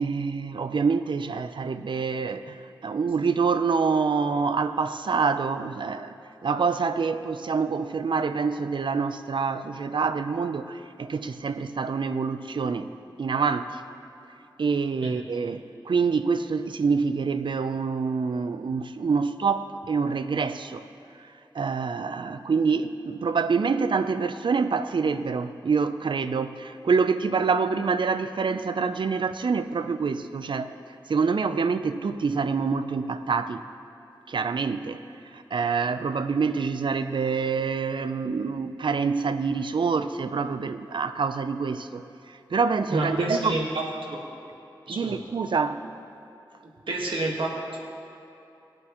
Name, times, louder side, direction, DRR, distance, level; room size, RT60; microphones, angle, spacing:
voice 1, 0.0-2.6 2.8-6.2 6.4-12.9 13.2-13.8 14.6-20.8 21.5-30.7 31.1-33.6 34.3-35.0 35.3-43.6 44.9-45.8, right 5 dB, 70° right, 10 dB, 0.6 m, -26 dB
voice 2, 42.9-44.2 44.9-45.2 46.6-47.8, right 2 dB, 85° right, -1 dB, 1.6 m, -29 dB
20.5 x 7.8 x 3.0 m, 2.8 s
cardioid pair, 45°, 8 cm